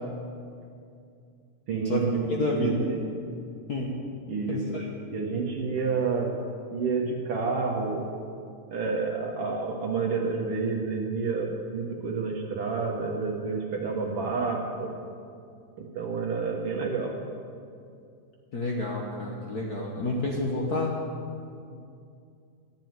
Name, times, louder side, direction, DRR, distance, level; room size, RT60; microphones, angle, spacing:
voice 1, 1.7-3.0 4.3-4.8 5.1-6.3 6.7-8.1 8.7-14.9 15.8-17.1, right 4 dB, 60° right, 0 dB, 1.8 m, -29 dB
voice 2, 2.4-2.9 3.7-3.9 4.5-4.8 18.5-21.0, left 2 dB, 75° left, -1 dB, 0.9 m, -29 dB
13.5 x 7.6 x 9.3 m, 2.4 s
omnidirectional pair, 3.5 m